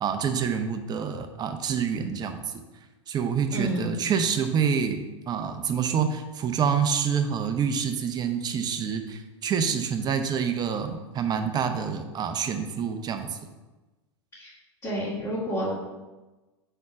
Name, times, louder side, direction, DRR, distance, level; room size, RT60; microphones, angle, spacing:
voice 1, 0.0-2.6 3.1-13.4, right 7 dB, 25° right, 7 dB, 0.7 m, -27 dB
voice 2, 3.5-4.1 14.3-14.5 14.8-15.8, equal, 20° left, -9 dB, 2.3 m, -30 dB
5.4 x 4.3 x 5.9 m, 1.1 s
hypercardioid pair, 95°, 16 cm